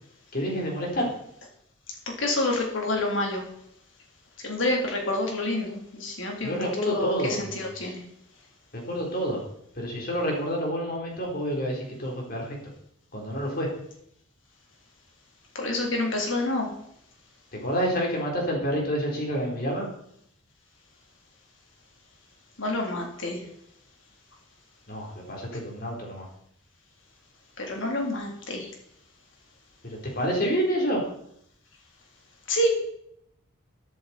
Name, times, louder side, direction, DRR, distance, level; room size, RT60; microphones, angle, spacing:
voice 1, 0.3-1.1 6.4-7.9 8.7-9.4 9.8-12.6 13.1-13.7 17.5-19.9 24.9-26.3 29.8-31.0, equal, 45° left, -1 dB, 3.8 m, -28 dB
voice 2, 2.2-3.4 4.4-8.0 15.6-16.7 22.6-23.4 27.6-28.7 32.5-32.7, left 1 dB, 65° left, 0 dB, 3.4 m, -28 dB
13.5 x 10.5 x 4.3 m, 0.73 s
head